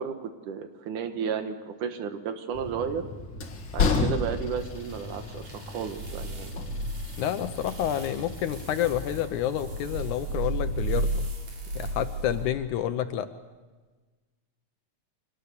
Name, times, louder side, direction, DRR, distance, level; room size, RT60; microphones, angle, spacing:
voice 1, 0.0-3.1 3.7-6.5, right 7 dB, 75° right, 8 dB, 2.7 m, -33 dB
Train, 2.5-11.1, left 4 dB, 45° left, 2.2 m, -33 dB
sound 1, 4.6-12.5, right 2 dB, 60° right, 4.9 m, -34 dB
voice 2, 7.2-11.3 11.8-13.3, left 11 dB, 75° left, 10 dB, 2.2 m, -29 dB
24.5 x 18.5 x 6.8 m, 1.3 s
omnidirectional pair, 3.7 m